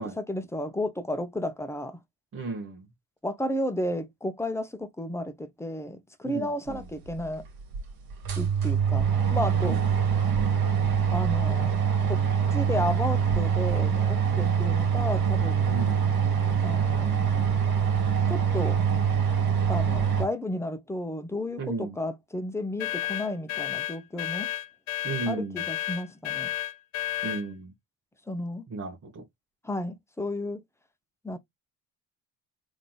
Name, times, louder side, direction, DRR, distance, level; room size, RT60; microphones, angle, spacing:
voice 1, 0.0-2.0 3.2-7.4 8.4-9.8 11.1-11.8 12.1-12.2 12.5-15.8 16.6-17.3 18.3-18.8 19.7-24.5 25.3-26.5 28.3-28.7 29.6-30.6 31.2-31.4, left 1 dB, 5° left, 1.0 m, -32 dB
voice 2, 2.3-2.8 6.2-6.9 9.6-9.8 15.6-16.1 21.6-22.0 25.0-25.7 27.2-27.7 28.7-29.2, right 3 dB, 35° right, 1.3 m, -34 dB
sound 1, 7.1-7.2 7.7-7.8 8.1-20.3, right 7 dB, 60° right, 1.8 m, -24 dB
sound 2, 22.8-27.5, left 13 dB, 85° left, 0.7 m, -32 dB
3.7 x 3.0 x 3.8 m
hypercardioid pair, 60°, 43 cm